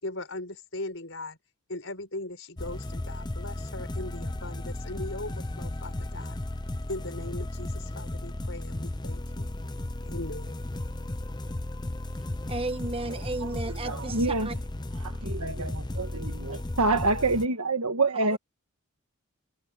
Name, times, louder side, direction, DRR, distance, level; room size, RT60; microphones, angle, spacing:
voice 1, 0.0-1.4 1.7-6.4 6.9-9.5 10.1-10.6, left 2 dB, 55° left, 6.5 m, -39 dB
sound 1, 2.6-17.5, left 1 dB, 20° left, 0.6 m, -35 dB
voice 2, 12.5-14.2 14.4-14.5 18.3-18.4, right 2 dB, 25° right, 1.2 m, -33 dB
voice 3, 13.4-14.5 14.9-18.4, right 3 dB, 85° right, 1.5 m, -27 dB
head